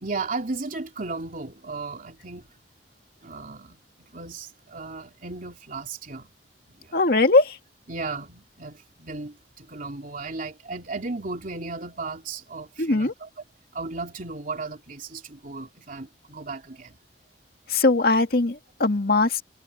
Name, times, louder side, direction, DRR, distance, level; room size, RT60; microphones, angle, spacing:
voice 1, 0.0-2.4 3.2-6.3 6.7-7.0 7.9-13.3 13.7-17.0, right 3 dB, 50° right, 3.1 m, -35 dB
voice 2, 6.9-7.6 12.8-13.1 17.7-19.4, left 3 dB, 60° left, 1.9 m, -20 dB
head